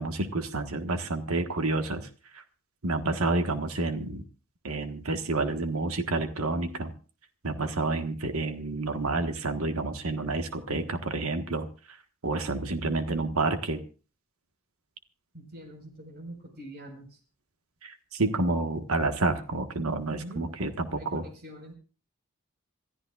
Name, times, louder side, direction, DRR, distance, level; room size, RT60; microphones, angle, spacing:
voice 1, 0.0-2.1 2.3-2.4 2.8-4.2 4.6-6.9 7.4-12.0 12.2-13.8 17.8-21.2, right 2 dB, 75° right, 7 dB, 1.5 m, -29 dB
voice 2, 15.3-17.2 20.1-20.5 20.9-21.8, right 1 dB, 50° right, 4 dB, 4.9 m, -44 dB
27.5 x 14.0 x 2.5 m, 0.37 s
head